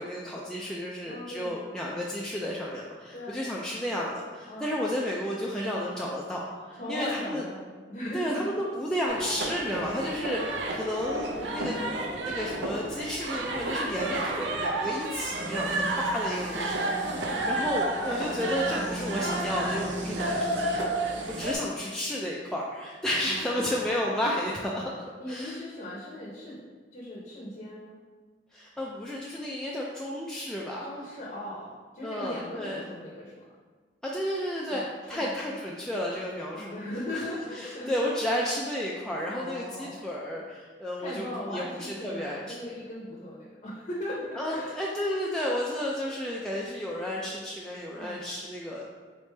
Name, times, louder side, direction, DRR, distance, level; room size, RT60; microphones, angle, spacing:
voice 1, 0.0-7.4 8.1-11.8 12.2-25.6 28.5-30.9 32.0-32.8 34.0-36.7 37.1-37.2 37.6-41.3 41.5-42.4 44.4-48.8, equal, 5° left, -4 dB, 0.3 m, -32 dB
voice 2, 1.1-1.5 3.1-3.4 4.5-4.7 6.7-8.5 10.1-10.4 17.1-17.6 23.2-23.9 25.2-26.6 26.9-28.0 30.8-33.4 34.7-35.6 36.5-37.9 39.3-40.0 41.0-44.9 47.9-48.3, left 1 dB, 45° left, -5 dB, 0.7 m, -39 dB
sound 1, 9.1-21.5, right 2 dB, 80° right, 0.5 m, -31 dB
4.0 x 3.2 x 3.2 m, 1.5 s
head